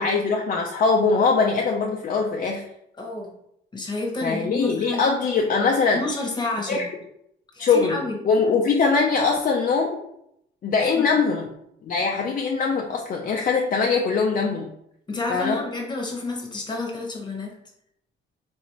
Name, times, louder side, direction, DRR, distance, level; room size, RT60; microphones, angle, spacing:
voice 1, 0.0-2.6 4.2-6.0 6.7-6.8 7.6-8.0 8.2-10.0 10.6-11.5 11.8-14.7 15.3-15.6, left 4 dB, 45° left, 1 dB, 0.5 m, -22 dB
voice 2, 3.0-3.3 3.7-5.1 5.9-6.9 7.5-8.4 10.9-11.0 15.1-17.6, left 2 dB, 20° left, 1 dB, 1.1 m, -30 dB
3.9 x 2.6 x 3.0 m, 0.76 s
cardioid pair, 90°, 20 cm